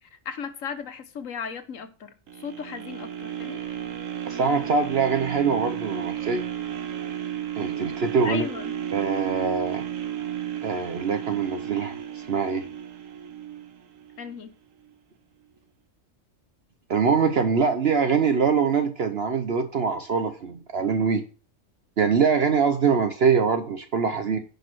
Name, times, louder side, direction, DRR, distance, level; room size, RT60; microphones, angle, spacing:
voice 1, 0.0-2.1 2.4-3.6 8.2-8.7 14.2-14.5, left 6 dB, 85° left, 1.5 m, -35 dB
sound 1, 2.3-14.4 14.9-15.0, right 10 dB, 85° right, 1.4 m, -33 dB
voice 2, 4.3-6.4 7.5-8.4 8.9-9.8 10.6-12.6 16.9-21.2 22.0-24.4, right 5 dB, 55° right, 1.1 m, -23 dB
10.5 x 5.3 x 6.1 m
omnidirectional pair, 1.3 m